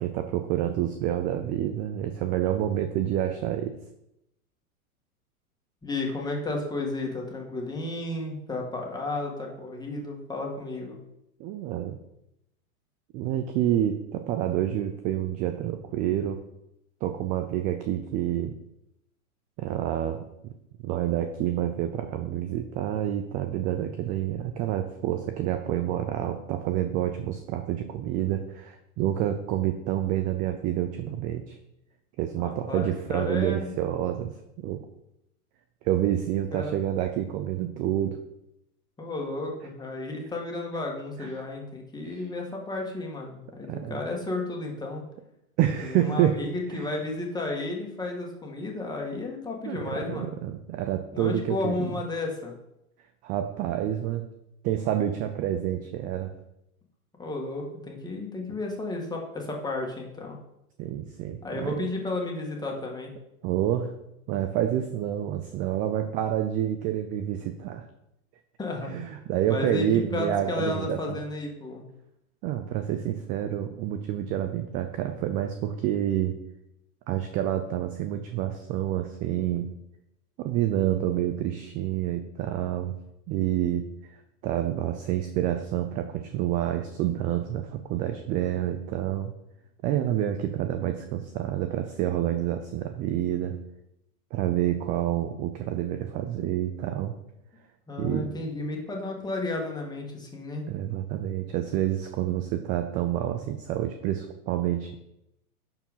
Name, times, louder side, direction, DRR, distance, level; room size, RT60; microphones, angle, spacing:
voice 1, 0.0-3.8 11.4-12.0 13.1-16.4 17.0-18.5 19.6-20.5 20.8-31.6 32.2-34.3 34.6-34.8 35.8-38.2 41.2-41.4 42.0-42.3 43.7-44.0 45.6-46.4 46.7-46.8 49.7-52.0 53.2-54.3 54.6-56.3 60.8-61.8 63.4-63.9 64.3-67.9 68.9-71.2 72.4-76.4 77.1-79.7 80.4-83.0 83.3-84.1 84.4-89.3 89.8-93.6 94.3-97.1 98.0-98.3 100.7-104.9, right 11 dB, 20° right, 8 dB, 0.4 m, -28 dB
voice 2, 5.8-10.9 32.4-33.7 36.5-36.7 39.0-45.0 45.8-50.4 51.1-52.5 57.2-60.4 61.4-63.1 68.6-68.9 69.5-71.8 97.9-100.7, left 2 dB, 10° left, 0 dB, 2.2 m, -33 dB
10.5 x 4.7 x 5.6 m, 0.84 s
hypercardioid pair, 120°, 44 cm